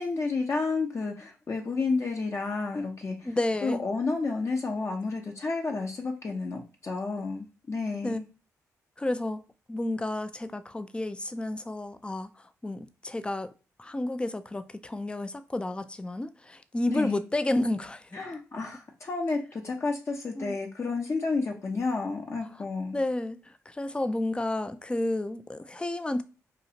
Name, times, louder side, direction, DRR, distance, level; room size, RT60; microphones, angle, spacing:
voice 1, 0.0-3.2 3.6-8.2 16.9-17.2 18.1-23.0, left 3 dB, 45° left, 0.7 m, -31 dB
voice 2, 3.2-3.8 8.0-8.2 9.0-9.4 9.7-13.5 13.8-18.2 20.4-20.5 22.9-26.2, left 1 dB, 15° left, 0.4 m, -31 dB
2.9 x 2.4 x 2.8 m
supercardioid pair, 50°, 7 cm